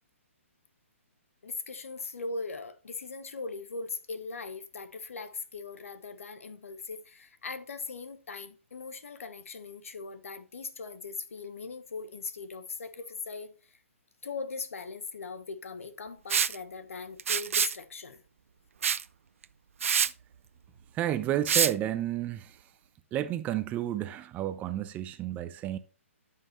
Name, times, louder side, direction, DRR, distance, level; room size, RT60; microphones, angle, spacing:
voice 1, 1.4-13.5 14.2-18.2, left 4 dB, 75° left, 1.3 m, -40 dB
Liquid, 16.3-16.5 17.2-17.8 18.8-19.0 19.4-19.5 19.8-20.1 21.5-21.7, right 7 dB, 70° right, 0.5 m, -25 dB
voice 2, 20.9-22.7 23.1-25.8, right 12 dB, 20° right, 0.6 m, -31 dB
13.0 x 5.7 x 3.1 m
hypercardioid pair, 140°, 8 cm